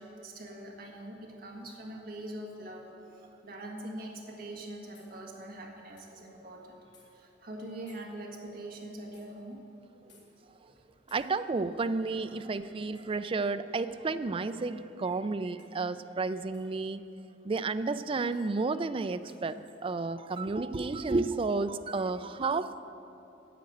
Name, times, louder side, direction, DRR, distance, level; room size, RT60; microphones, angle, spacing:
voice 1, 0.0-6.8 7.1-9.6 10.1-10.8 11.1-11.2 12.3-12.5, right 1 dB, 55° right, 0 dB, 1.7 m, -44 dB
sound 1, 4.9-5.1 6.0-6.1 6.9-7.1 7.9-8.1 9.1-9.3 10.1-10.3 11.1-11.3 12.9-13.2 14.5-14.7 15.6-15.8 16.5-16.7 18.3-18.5 19.3-19.5, left 4 dB, 70° left, 2.9 m, -61 dB
voice 2, 11.1-17.1 17.4-22.9, right 3 dB, 30° right, 12 dB, 0.4 m, -32 dB
10.0 x 8.2 x 7.9 m, 2.9 s
head